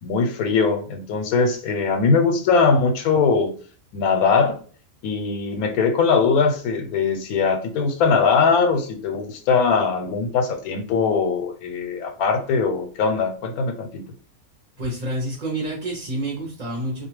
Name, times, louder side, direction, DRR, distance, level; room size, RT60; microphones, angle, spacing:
voice 1, 0.0-3.5 3.9-4.6 5.0-14.0, left 5 dB, 85° left, 5 dB, 1.1 m, -21 dB
voice 2, 14.8-17.1, right 1 dB, 40° right, -2 dB, 0.6 m, -28 dB
2.4 x 2.3 x 3.0 m, 0.42 s
omnidirectional pair, 1.5 m